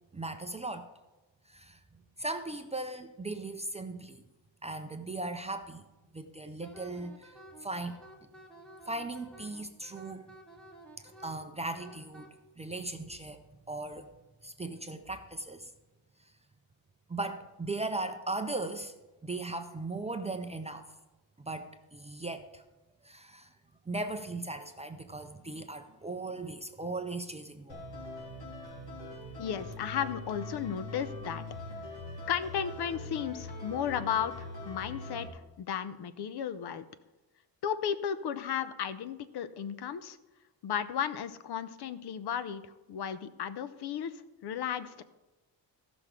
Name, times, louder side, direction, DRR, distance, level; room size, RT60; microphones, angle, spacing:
voice 1, 0.1-0.9 1.5-1.8 2.2-4.3 4.6-5.8 6.1-8.0 8.9-10.3 11.0-14.1 14.4-15.7 17.1-18.9 19.2-20.9 21.4-22.6 23.0-23.5 23.9-27.8, right 2 dB, 15° right, 6 dB, 0.4 m, -38 dB
Wind instrument woodwind instrument, 6.6-12.3, right 1 dB, ahead, 1.2 m, -52 dB
sound 1, 27.7-35.3, left 2 dB, 80° left, 3.2 m, -42 dB
voice 2, 29.4-31.9 32.3-36.8 37.6-40.2 40.6-42.6 42.9-45.0, left 8 dB, 60° left, 13 dB, 0.7 m, -34 dB
15.0 x 6.0 x 5.0 m, 1.1 s
cardioid pair, 150°, 44 cm